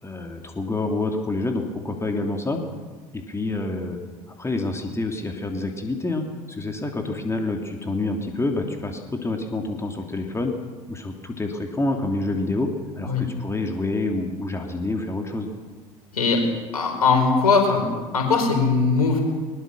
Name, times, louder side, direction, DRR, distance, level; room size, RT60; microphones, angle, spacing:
voice 1, 0.0-2.6 3.1-4.0 4.4-10.5 10.9-15.5, left 2 dB, 15° left, 3 dB, 3.0 m, -27 dB
voice 2, 16.7-17.9 18.1-19.2, left 4 dB, 80° left, 3 dB, 4.6 m, -20 dB
21.5 x 20.5 x 6.4 m, 1.4 s
figure-of-eight pair, 70°, 19 cm